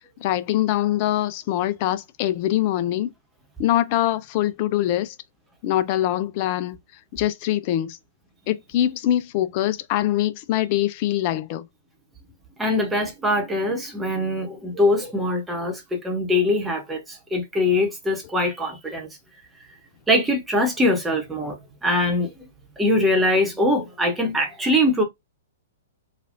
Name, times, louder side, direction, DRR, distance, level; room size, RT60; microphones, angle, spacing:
voice 1, 0.2-3.1 3.6-5.2 5.6-6.8 7.1-8.0 8.5-11.7, left 13 dB, 45° left, 0.3 m, -23 dB
voice 2, 12.6-19.1 20.1-21.6 21.8-22.3 22.8-25.0, left 1 dB, 10° right, 1.0 m, -22 dB
3.2 x 2.4 x 2.5 m
figure-of-eight pair, 115°, 0 cm